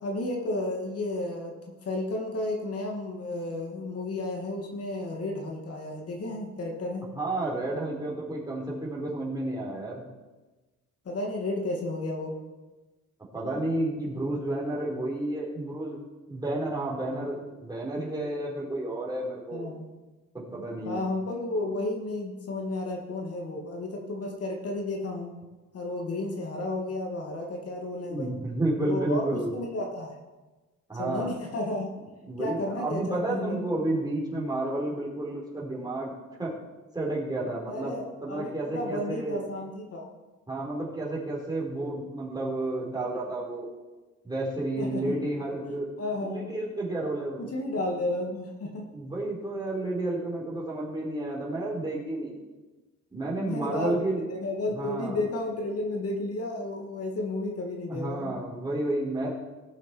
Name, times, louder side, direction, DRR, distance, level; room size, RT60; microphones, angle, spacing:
voice 1, 0.0-7.1 11.1-12.4 19.5-19.9 20.8-25.3 25.7-28.3 28.8-30.2 31.0-31.9 32.4-33.7 37.7-40.1 44.8-45.1 46.0-46.5 47.4-48.9 53.4-54.0 54.3-58.4, left 2 dB, 50° left, 0 dB, 2.2 m, -32 dB
voice 2, 7.2-10.0 13.3-16.0 16.3-19.7 20.3-21.0 28.1-29.5 30.9-31.3 32.2-36.1 36.4-36.5 36.9-38.0 38.2-39.4 40.5-43.7 44.2-45.9 46.2-47.4 48.9-52.3 53.1-54.3 54.7-55.2 57.9-59.3, right 2 dB, 15° right, -4 dB, 4.4 m, -31 dB
18.5 x 7.4 x 4.5 m, 1.2 s
cardioid pair, 90°, 30 cm